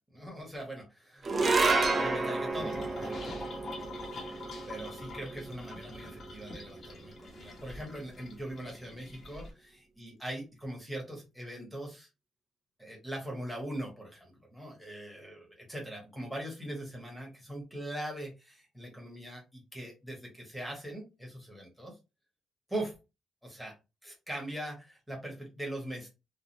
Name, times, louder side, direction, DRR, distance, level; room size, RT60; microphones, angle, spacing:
voice 1, 0.1-3.5 4.7-9.7 10.0-12.1 12.8-22.0 22.7-22.9 23.4-23.7 24.0-26.1, right 1 dB, ahead, -1 dB, 1.2 m, -41 dB
sound 1, 1.2-7.7, right 3 dB, 30° right, 0.4 m, -31 dB
sound 2, 2.5-9.5, left 2 dB, 40° left, 0.8 m, -45 dB
3.2 x 2.3 x 2.6 m, 0.27 s
cardioid pair, 150°, 0 cm